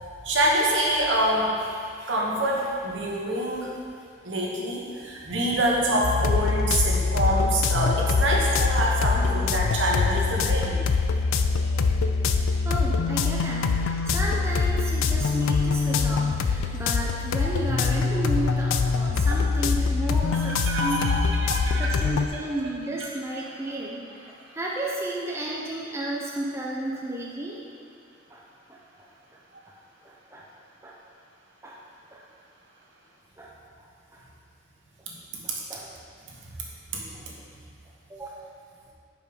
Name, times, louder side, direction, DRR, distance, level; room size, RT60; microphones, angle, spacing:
voice 1, 0.2-1.7 2.0-3.7 4.2-10.8 20.6-21.9 35.1-35.4 36.9-37.2, right 1 dB, 65° right, -3 dB, 1.1 m, -26 dB
sound 1, 6.0-22.3, left 4 dB, 90° left, 0.4 m, -24 dB
voice 2, 12.3-21.1 21.8-27.6 28.3-28.4 28.7-29.1 29.7-29.8 30.0-30.5 30.8-31.0 31.6-31.8 32.1-32.2 33.4-33.5 34.1-34.2 35.4-36.0 37.1-37.3 38.1-38.5, right 1 dB, 15° right, -4 dB, 0.5 m, -33 dB
5.3 x 4.9 x 5.2 m, 2.4 s
head